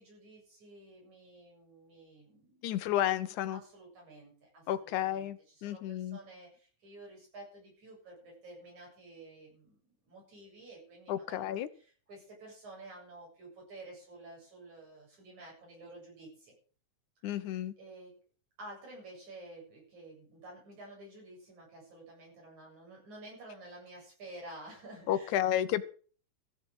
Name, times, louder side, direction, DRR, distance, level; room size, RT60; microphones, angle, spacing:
voice 1, 0.0-2.9 3.3-9.8 10.0-16.5 17.2-18.2 18.6-25.8, right 2 dB, 75° right, 9.0 m, -51 dB
voice 2, 2.6-3.6 4.7-6.2 11.1-11.7 17.2-17.7 25.1-25.8, left 12 dB, 85° left, 2.4 m, -32 dB
15.0 x 7.1 x 7.9 m
omnidirectional pair, 3.4 m